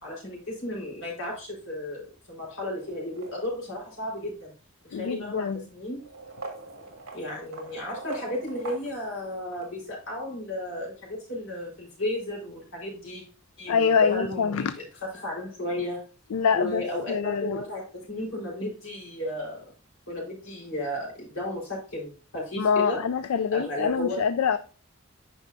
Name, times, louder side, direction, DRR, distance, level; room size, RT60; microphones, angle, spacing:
voice 1, 0.0-4.5 4.9-5.5 5.7-6.0 7.1-13.2 13.6-14.8 15.1-16.0 16.5-19.7 20.1-23.0 23.5-24.2, left 1 dB, 65° left, 4.1 m, -34 dB
sound 1, 2.8-3.8 4.8-4.9 5.9-9.7, right 2 dB, 70° right, 1.8 m, -42 dB
voice 2, 4.9-5.6 13.7-14.7 16.3-16.8 17.1-17.6 22.6-24.6, left 6 dB, 85° left, 0.4 m, -25 dB
9.5 x 5.4 x 2.6 m
head